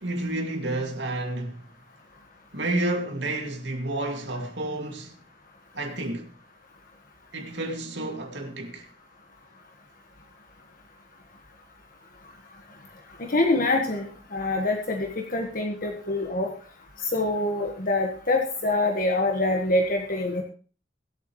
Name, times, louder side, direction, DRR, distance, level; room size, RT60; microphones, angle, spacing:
voice 1, 0.0-1.6 2.5-5.1 5.7-6.3 7.3-8.9, right 1 dB, 65° right, 2.4 m, -30 dB
voice 2, 13.2-14.1 14.3-16.5 17.0-20.4, left 2 dB, 45° left, 1.6 m, -25 dB
23.5 x 8.1 x 3.2 m
head